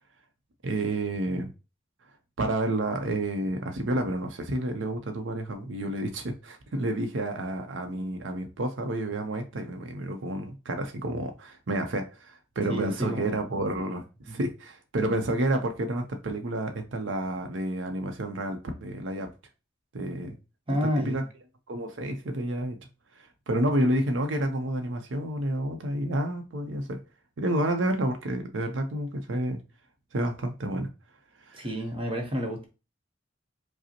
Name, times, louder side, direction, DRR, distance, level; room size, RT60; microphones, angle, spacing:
voice 1, 0.6-1.5 2.4-19.3 19.9-20.4 20.8-21.2 21.7-22.8 23.2-27.0 27.4-29.6 30.1-30.9 31.5-31.7, right 1 dB, 75° right, 0.6 m, -30 dB
voice 2, 12.7-13.4 14.3-14.4 20.2-20.3 20.7-21.2 31.5-32.7, equal, 30° right, 0.8 m, -30 dB
4.9 x 2.0 x 2.8 m
head